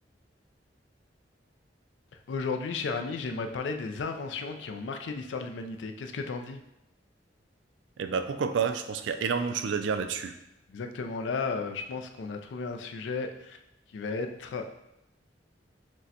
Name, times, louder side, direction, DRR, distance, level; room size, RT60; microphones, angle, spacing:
voice 1, 2.1-6.6 10.7-13.6 13.9-14.7, left 4 dB, 80° left, 5 dB, 0.4 m, -34 dB
voice 2, 8.0-10.3, right 6 dB, 85° right, 9 dB, 0.4 m, -29 dB
6.1 x 2.2 x 2.8 m, 0.86 s
head